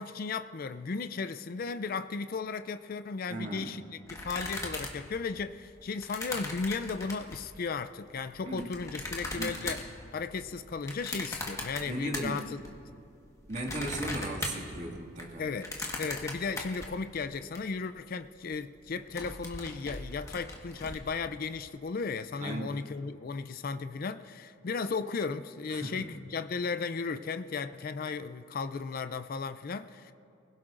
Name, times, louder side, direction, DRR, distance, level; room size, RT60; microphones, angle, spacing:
voice 1, 0.0-9.8 10.1-12.6 15.4-15.7 16.0-30.1, left 4 dB, 45° left, 0.4 m, -35 dB
voice 2, 3.3-3.7 8.5-8.7 9.4-9.7 11.8-12.5 13.5-15.5 22.4-22.8 25.7-26.1, right 1 dB, 40° right, 2.0 m, -37 dB
sound 1, 4.1-7.5 8.2-12.7 13.0-17.6 18.0-18.1 18.3-18.6 18.9-21.0, left 2 dB, 15° left, 1.4 m, -39 dB
24.5 x 16.5 x 2.5 m
head